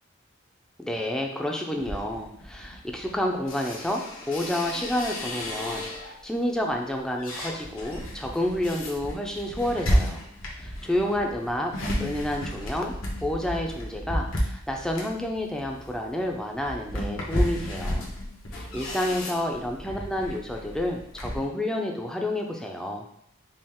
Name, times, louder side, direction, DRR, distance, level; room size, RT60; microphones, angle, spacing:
voice 1, 0.8-10.2 10.5-11.7 12.0-12.9 13.2-18.0 18.5-23.0, left 1 dB, 5° left, 1 dB, 0.5 m, -29 dB
sound 1, 1.8-6.3 6.7-21.5, equal, 85° left, 1.1 m, -33 dB
5.4 x 2.4 x 3.6 m, 0.73 s
head